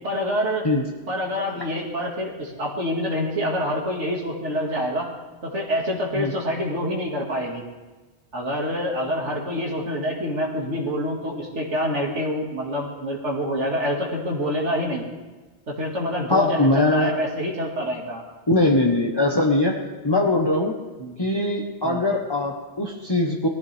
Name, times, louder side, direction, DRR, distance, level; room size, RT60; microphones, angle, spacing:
voice 1, 0.0-0.6 1.1-5.1 5.4-7.6 8.3-15.0 15.7-18.2 21.0-21.2 21.8-22.0, equal, 90° right, -2 dB, 2.4 m, -26 dB
voice 2, 16.3-17.1 18.5-19.8 20.0-20.7 21.2-23.5, left 2 dB, 25° left, -1 dB, 1.1 m, -21 dB
19.0 x 14.0 x 3.4 m, 1.2 s
omnidirectional pair, 1.2 m